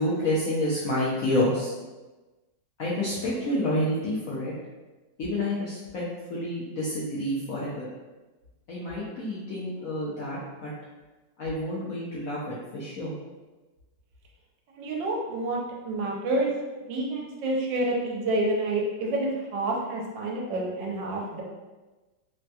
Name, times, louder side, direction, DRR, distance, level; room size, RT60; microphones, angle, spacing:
voice 1, 0.0-1.7 2.8-4.5 5.2-6.0 6.3-7.9 8.7-10.7 11.4-13.1, left 1 dB, 70° left, -7 dB, 0.8 m, -29 dB
voice 2, 14.7-16.5 16.9-21.4, right 2 dB, 80° right, -1 dB, 1.3 m, -28 dB
3.4 x 2.2 x 2.7 m, 1.2 s
omnidirectional pair, 2.0 m